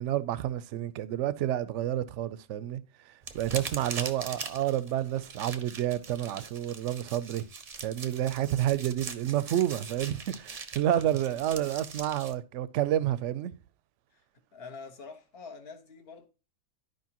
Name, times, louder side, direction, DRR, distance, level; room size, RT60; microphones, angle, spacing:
voice 1, 0.0-2.8 3.3-7.5 7.8-13.5, right 12 dB, 65° right, 0.8 m, -29 dB
sound 1, 3.2-12.3, right 5 dB, 35° right, 0.6 m, -42 dB
voice 2, 14.5-16.3, left 4 dB, 45° left, 1.4 m, -46 dB
12.0 x 5.0 x 2.9 m
omnidirectional pair, 1.5 m